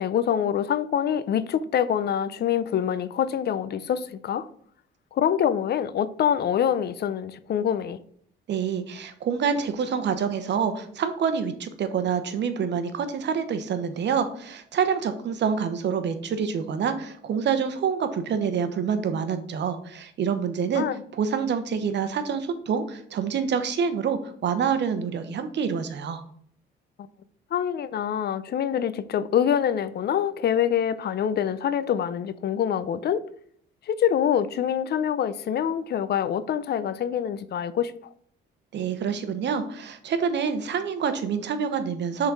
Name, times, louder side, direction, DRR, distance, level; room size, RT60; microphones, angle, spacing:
voice 1, 0.0-4.5 5.1-8.0 20.8-21.0 27.5-33.2 33.9-37.9, left 9 dB, 55° left, 0.5 m, -25 dB
voice 2, 8.5-20.8 21.1-26.2 38.7-42.3, right 6 dB, 60° right, 0.9 m, -27 dB
6.3 x 3.9 x 4.7 m
cardioid pair, 90°, 20 cm